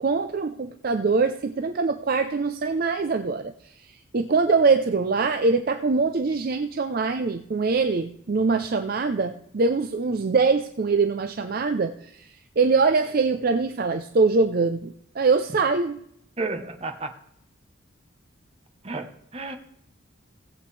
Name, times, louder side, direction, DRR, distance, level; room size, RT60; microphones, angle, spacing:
voice 1, 0.0-3.5 3.8-12.3 12.6-16.0, right 4 dB, 45° right, 8 dB, 0.5 m, -23 dB
voice 2, 16.4-17.2 18.8-19.6, right 3 dB, 30° right, 6 dB, 1.0 m, -32 dB
17.5 x 7.9 x 3.3 m, 0.72 s
head